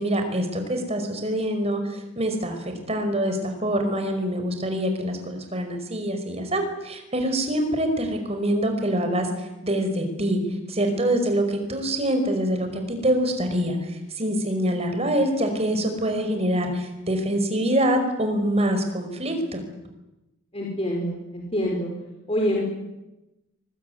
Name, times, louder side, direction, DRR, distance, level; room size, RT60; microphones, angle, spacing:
voice 1, 0.0-2.6 2.9-10.4 10.7-19.6, right 1 dB, 30° right, 6 dB, 5.2 m, -25 dB
voice 2, 20.5-21.9 22.3-22.6, equal, 30° left, -1 dB, 5.0 m, -26 dB
24.0 x 21.5 x 9.7 m, 0.96 s
head